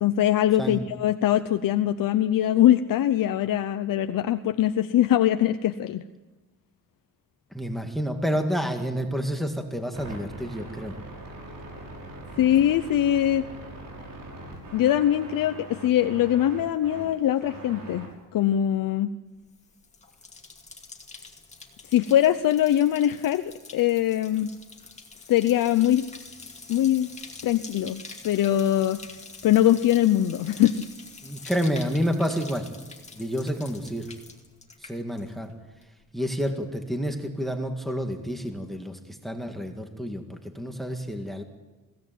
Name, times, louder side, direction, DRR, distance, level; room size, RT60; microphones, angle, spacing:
voice 1, 0.0-6.0 12.4-13.5 14.7-18.1 18.3-19.1 21.9-23.4 23.7-24.5 25.3-26.1 26.7-27.1 27.4-29.0 29.4-30.8, left 12 dB, 90° left, 9 dB, 0.7 m, -22 dB
voice 2, 7.5-11.0 12.4-12.5 31.2-32.7 33.1-34.1 34.8-35.5 36.1-41.4, equal, ahead, 5 dB, 1.9 m, -29 dB
sound 1, 9.9-18.1, right 2 dB, 75° right, 6.4 m, -41 dB
Bathtub (filling or washing), 19.4-35.5 35.8-36.3, left 3 dB, 20° left, 2.3 m, -46 dB
21.5 x 17.0 x 9.3 m, 1.2 s
wide cardioid pair, 145°, 32 cm